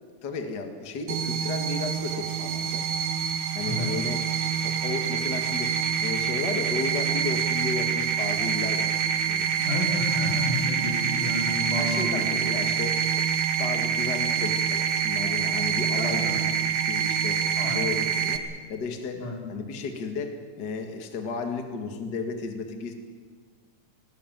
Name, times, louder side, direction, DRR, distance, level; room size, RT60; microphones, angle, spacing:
voice 1, 0.2-2.9 3.5-4.2 4.6-5.7 6.0-9.0 9.2-9.6 11.8-13.3 13.6-22.9, left 4 dB, 35° left, 5 dB, 2.1 m, -34 dB
sound 1, 1.1-18.4, right 7 dB, 65° right, 2.5 m, -26 dB
voice 2, 3.6-4.0 9.6-12.6 16.0-16.5 17.6-17.9 19.2-19.5, left 2 dB, 75° left, -1 dB, 6.1 m, -31 dB
20.0 x 19.5 x 9.2 m, 1.5 s
omnidirectional pair, 3.6 m